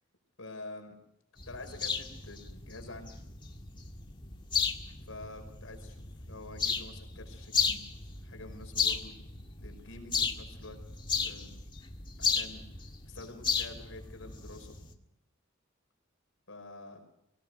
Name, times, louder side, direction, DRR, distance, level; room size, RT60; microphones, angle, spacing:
voice 1, 0.4-0.9 1.5-3.2 5.1-7.8 8.2-10.8 11.2-11.7 12.2-12.6 13.0-14.8 16.5-17.0, left 2 dB, 75° left, 4 dB, 5.4 m, -47 dB
sound 1, 1.4-14.9, left 6 dB, 25° left, 1.8 m, -35 dB
24.0 x 18.0 x 6.5 m, 0.80 s
head